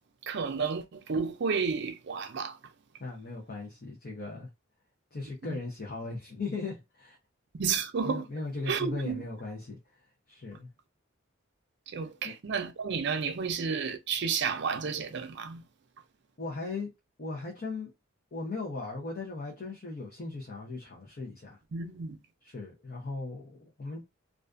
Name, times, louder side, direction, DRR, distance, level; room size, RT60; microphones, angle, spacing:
voice 1, 0.2-2.6 5.5-5.6 7.5-8.2 8.7-9.2 11.9-15.6 21.7-22.2, right 5 dB, 60° right, 0.4 m, -31 dB
voice 2, 3.0-4.5 5.1-7.2 8.0-10.7 12.2-12.3 16.4-16.9 17.2-17.9 18.3-21.6 22.4-24.0, left 3 dB, 50° left, 0.6 m, -38 dB
2.4 x 2.3 x 2.4 m
head